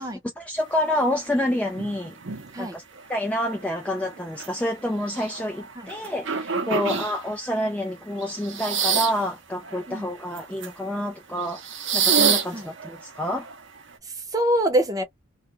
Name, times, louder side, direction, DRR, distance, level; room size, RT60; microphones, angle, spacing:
voice 1, 0.4-2.2 2.6-2.8 3.1-11.6 11.9-13.5, left 1 dB, 5° left, 0.3 m, -28 dB
sound 1, 1.1-1.2 1.7-2.6 3.0-7.5 8.1-9.3 9.6-10.7 11.4-13.9, right 6 dB, 60° right, 0.7 m, -28 dB
voice 2, 6.6-7.0 9.9-10.1 12.5-12.7 14.0-15.0, right 1 dB, 15° right, 0.7 m, -26 dB
2.3 x 2.1 x 3.0 m
head